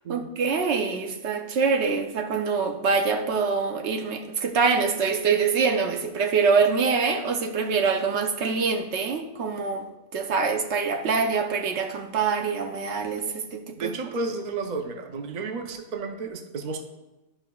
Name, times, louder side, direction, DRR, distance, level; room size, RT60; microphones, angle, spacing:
voice 1, 0.1-9.9 10.1-13.9, right 5 dB, 75° right, 5 dB, 1.0 m, -25 dB
voice 2, 13.7-16.8, right 4 dB, 45° right, 5 dB, 0.7 m, -32 dB
11.0 x 5.5 x 2.3 m, 1.0 s
omnidirectional pair, 1.2 m